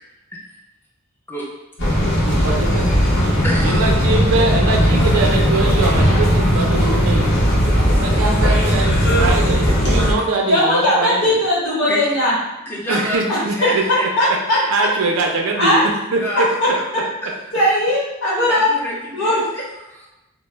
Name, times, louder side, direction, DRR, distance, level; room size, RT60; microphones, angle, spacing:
sound 1, 1.8-10.1, equal, 55° left, 0.8 m, -17 dB
voice 1, 2.2-2.9 3.6-7.3 8.0-11.4 12.9-13.8 14.7-16.2, right 3 dB, 75° right, 0 dB, 0.4 m, -22 dB
voice 2, 3.4-4.1 8.6-8.9 9.6-9.7 10.1-10.2 11.9-12.1 12.7-14.3 16.2-16.9 17.2-17.7 18.5-20.1, left 1 dB, 10° left, -3 dB, 0.4 m, -29 dB
voice 3, 10.5-12.3 13.3-14.6 15.6-15.9 17.5-18.7 19.1-19.4, left 1 dB, 80° left, -8 dB, 1.2 m, -18 dB
2.1 x 2.0 x 3.1 m, 0.97 s
head